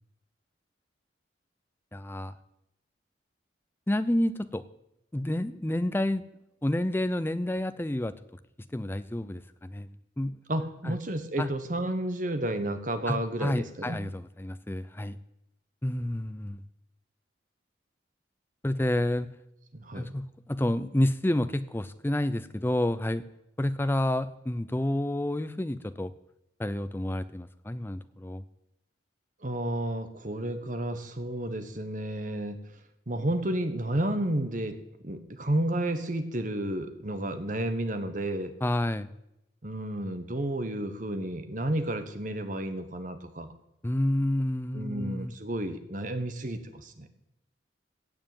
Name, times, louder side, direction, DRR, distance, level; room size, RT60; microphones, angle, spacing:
voice 1, 1.9-2.3 3.9-4.6 5.1-6.2 6.6-8.1 8.7-9.9 10.2-10.4 10.8-11.0 11.4-11.5 13.1-15.2 15.8-16.6 18.6-19.3 19.9-23.2 23.6-26.1 26.6-28.4 38.6-39.1 43.8-45.3, left 1 dB, 10° left, 12 dB, 0.5 m, -29 dB
voice 2, 10.5-14.0 19.7-20.1 29.4-32.6 33.1-34.8 35.0-38.5 39.6-43.5 44.7-47.1, right 1 dB, 45° right, 9 dB, 1.2 m, -31 dB
16.0 x 5.5 x 9.0 m, 0.85 s
head